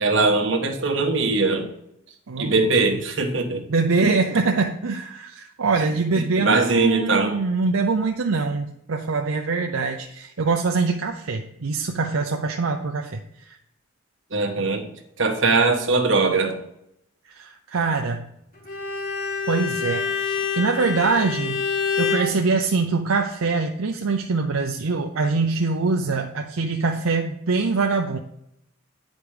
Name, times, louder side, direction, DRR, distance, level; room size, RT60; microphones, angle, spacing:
voice 1, 0.0-1.7 2.4-3.6 4.0-4.2 6.4-7.4 14.3-14.9 15.2-16.6, right 3 dB, 65° right, 3 dB, 1.4 m, -21 dB
voice 2, 2.3-2.7 3.7-13.6 17.3-18.2 19.5-21.7 22.0-28.2, right 4 dB, 85° right, 4 dB, 0.6 m, -24 dB
Bowed string instrument, 18.7-22.4, left 6 dB, 40° left, 1.7 m, -26 dB
9.2 x 5.2 x 4.9 m, 0.79 s
head